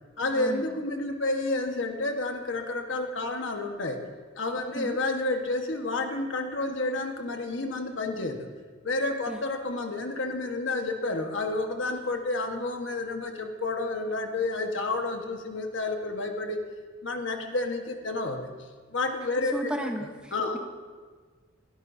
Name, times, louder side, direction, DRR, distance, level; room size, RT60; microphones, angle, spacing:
voice 1, 0.2-4.0 4.4-8.5 8.8-16.6 17.0-18.5 18.9-19.7 20.0-20.6, left 2 dB, 75° left, 4 dB, 1.3 m, -30 dB
voice 2, 19.5-20.6, right 1 dB, 5° right, 3 dB, 0.8 m, -34 dB
22.5 x 12.0 x 2.7 m, 1.5 s
head